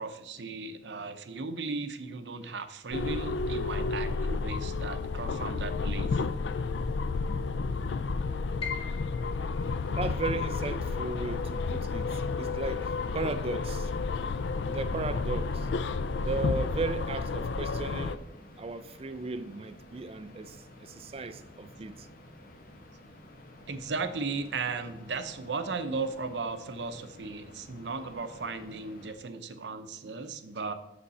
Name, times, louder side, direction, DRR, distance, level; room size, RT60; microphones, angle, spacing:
voice 1, 0.0-6.2 23.7-30.7, right 4 dB, 85° right, 0.7 m, -36 dB
sound 1, 2.9-18.2, left 4 dB, 90° left, 0.4 m, -31 dB
Piano, 8.6-14.5 14.9-16.0 16.4-16.5 17.2-17.6, left 6 dB, 35° left, 0.9 m, -46 dB
sound 2, 9.6-29.1, left 1 dB, 55° left, 1.2 m, -52 dB
voice 2, 9.9-13.9 14.7-15.7 16.2-18.2 18.6-22.1, right 3 dB, 35° right, 0.4 m, -36 dB
8.1 x 6.5 x 4.1 m
head